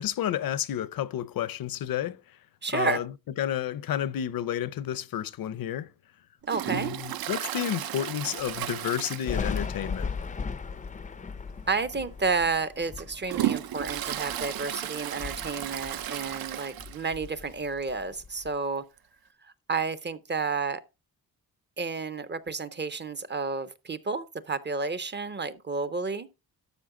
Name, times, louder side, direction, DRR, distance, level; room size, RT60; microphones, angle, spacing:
voice 1, 0.0-2.2 2.7-3.1 3.4-5.9 6.7-10.1, left 11 dB, 70° left, 0.7 m, -31 dB
voice 2, 2.6-3.0 6.5-6.9 11.7-18.8 19.7-20.8 21.8-26.3, right 4 dB, 30° right, 0.5 m, -31 dB
Toilet flush, 6.5-9.9 10.2-10.3 10.7-10.8 11.7-11.8 12.3-17.2 17.6-17.7 17.8-17.9 19.0-19.1, right 12 dB, 75° right, 0.6 m, -34 dB
Thunder, 9.2-14.7 15.0-16.5 16.8-18.5, left 5 dB, 20° left, 0.4 m, -37 dB
12.5 x 6.3 x 3.7 m
wide cardioid pair, 155°, 37 cm